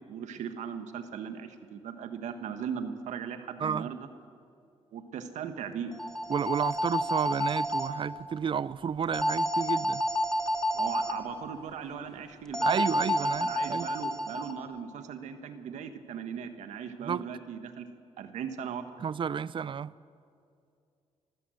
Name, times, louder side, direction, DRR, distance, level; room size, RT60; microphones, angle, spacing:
voice 1, 0.1-4.1 4.9-5.9 10.7-17.9 18.2-18.8, right 7 dB, 85° right, 1.5 m, -38 dB
sound 1, 5.9-7.9 9.1-11.1 12.5-14.5, left 1 dB, 5° left, 1.9 m, -29 dB
voice 2, 6.3-10.0 12.6-13.9 17.0-17.2 19.0-19.9, right 7 dB, 45° right, 0.5 m, -31 dB
24.5 x 15.5 x 7.8 m
cardioid pair, 85°, 12 cm